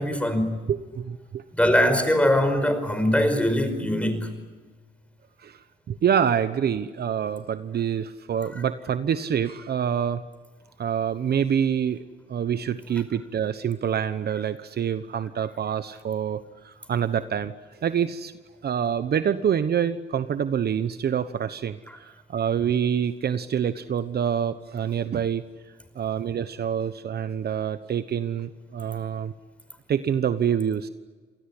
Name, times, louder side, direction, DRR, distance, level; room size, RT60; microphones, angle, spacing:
voice 1, 0.0-0.6 1.5-4.3, left 1 dB, 5° left, 5.3 m, -22 dB
voice 2, 0.7-1.4 5.4-10.2 10.8-12.0 12.3-17.5 17.8-18.3 18.6-25.4 25.9-29.3 29.9-30.9, right 8 dB, 55° right, 1.1 m, -26 dB
27.5 x 19.5 x 10.0 m
cardioid pair, 90°, 20 cm